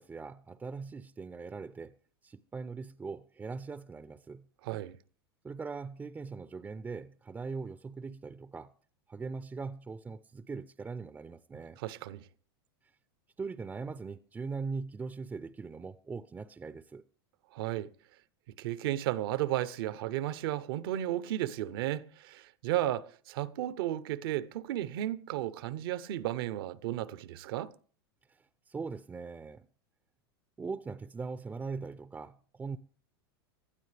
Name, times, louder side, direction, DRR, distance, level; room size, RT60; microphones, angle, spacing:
voice 1, 0.0-1.9 2.2-4.4 5.4-8.7 9.1-11.8 13.4-17.0 28.3-29.7 30.6-32.8, right 4 dB, 15° right, 0.5 m, -41 dB
voice 2, 4.6-5.0 11.8-12.2 17.5-17.9 18.6-27.7, right 13 dB, 70° right, 0.8 m, -34 dB
18.5 x 12.5 x 3.4 m
supercardioid pair, 120°, 13 cm